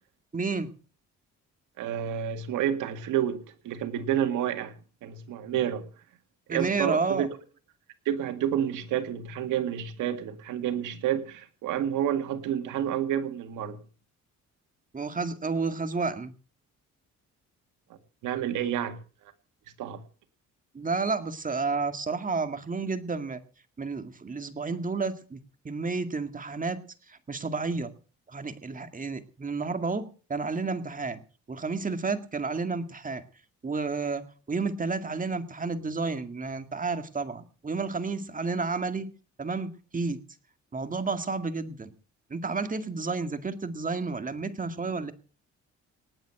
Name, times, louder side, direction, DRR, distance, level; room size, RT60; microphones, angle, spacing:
voice 1, 0.3-0.7 6.5-7.3 14.9-16.3 20.7-23.4 23.8-25.4 25.6-26.8 27.1-27.9 28.3-31.2 31.5-33.2 33.6-39.1 39.4-40.2 40.7-41.9 42.3-45.1, right 4 dB, 25° right, 8 dB, 2.1 m, -31 dB
voice 2, 1.8-4.7 5.0-5.9 6.5-7.3 8.1-13.8 17.9-19.0 19.8-20.0, right 10 dB, 90° right, 6 dB, 2.0 m, -29 dB
19.0 x 7.5 x 7.6 m, 0.40 s
cardioid pair, 90°, 30 cm